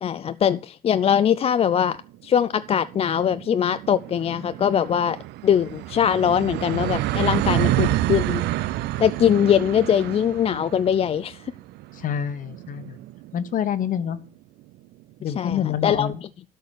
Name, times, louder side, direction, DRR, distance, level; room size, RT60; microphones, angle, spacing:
voice 1, 0.0-2.0 2.2-5.2 5.4-8.4 9.0-11.5 15.4-16.1, left 8 dB, 35° left, 0.4 m, -21 dB
sound 1, 1.8-1.9 2.2-2.3 2.6-14.0, right 16 dB, 80° right, 0.5 m, -28 dB
voice 2, 11.9-13.0 13.3-14.2 15.2-16.2, left 8 dB, 50° left, 1.1 m, -27 dB
12.5 x 4.7 x 6.5 m
cardioid pair, 110°, 17 cm